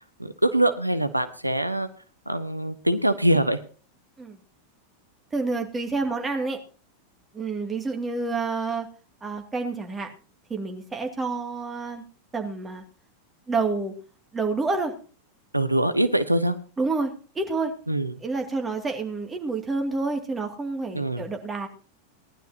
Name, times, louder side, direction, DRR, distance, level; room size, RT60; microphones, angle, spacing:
voice 1, 0.2-1.9 2.3-3.6 15.5-16.6 17.9-18.1 20.9-21.2, right 1 dB, 85° right, 11 dB, 0.9 m, -23 dB
voice 2, 5.3-6.6 7.3-8.9 9.2-10.1 10.5-12.0 12.3-12.8 13.5-13.9 14.3-14.9 16.8-17.7 18.2-21.7, right 3 dB, 15° right, 3 dB, 2.3 m, -28 dB
19.0 x 11.5 x 2.8 m, 0.38 s
figure-of-eight pair, 90°, 0 cm